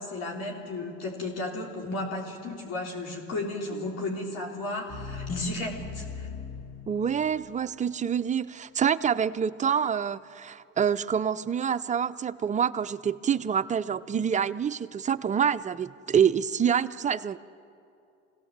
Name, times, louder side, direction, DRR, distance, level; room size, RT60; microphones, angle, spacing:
voice 1, 0.0-6.3, left 2 dB, 50° left, 0 dB, 3.5 m, -34 dB
sound 1, 3.7-7.8, left 5 dB, 70° left, 2.3 m, -41 dB
voice 2, 6.9-17.4, right 7 dB, 25° right, 12 dB, 0.5 m, -26 dB
23.5 x 17.0 x 7.4 m, 2.7 s
supercardioid pair, 90°, 32 cm